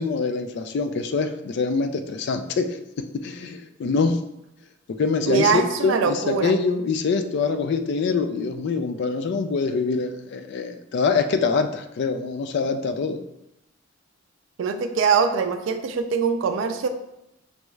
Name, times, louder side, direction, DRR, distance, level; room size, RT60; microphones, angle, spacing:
voice 1, 0.0-4.2 5.0-13.2, left 4 dB, 60° left, 8 dB, 0.3 m, -24 dB
voice 2, 5.3-6.5 14.6-16.9, right 5 dB, 70° right, 7 dB, 0.3 m, -22 dB
5.3 x 2.3 x 3.1 m, 0.84 s
head